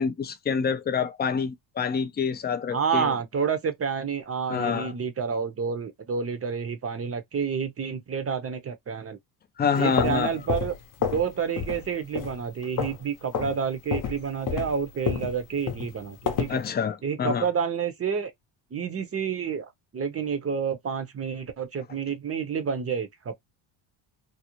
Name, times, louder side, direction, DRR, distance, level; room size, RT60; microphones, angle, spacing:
voice 1, 0.0-3.1 4.5-4.9 9.6-10.3 16.5-17.5, left 6 dB, 25° left, 0.3 m, -27 dB
voice 2, 2.7-9.2 9.8-16.6 17.0-18.3 18.7-23.3, right 6 dB, 30° right, 0.6 m, -29 dB
sound 1, 9.8-11.3 11.6-11.9 12.1-13.0 13.3-13.6 13.9-16.6, left 6 dB, 40° left, 0.7 m, -29 dB
2.6 x 2.0 x 2.9 m
cardioid pair, 105°, 49 cm